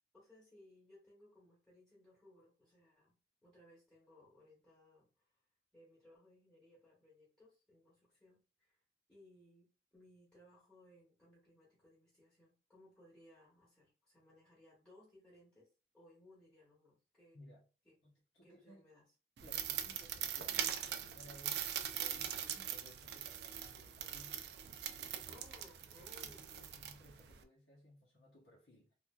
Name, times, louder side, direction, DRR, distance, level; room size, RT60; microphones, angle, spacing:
voice 1, 0.1-5.4 5.7-8.8 9.1-15.7 15.9-17.4 17.8-18.0 18.4-19.1 25.3-26.8, left 1 dB, 5° left, 1.1 m, -64 dB
voice 2, 17.3-17.6 18.0-18.8 19.4-24.6 24.9-25.4 25.9-28.9, left 1 dB, 80° left, 0.9 m, -60 dB
sound 1, 19.4-27.4, right 10 dB, 70° right, 0.4 m, -42 dB
3.2 x 2.5 x 2.3 m
head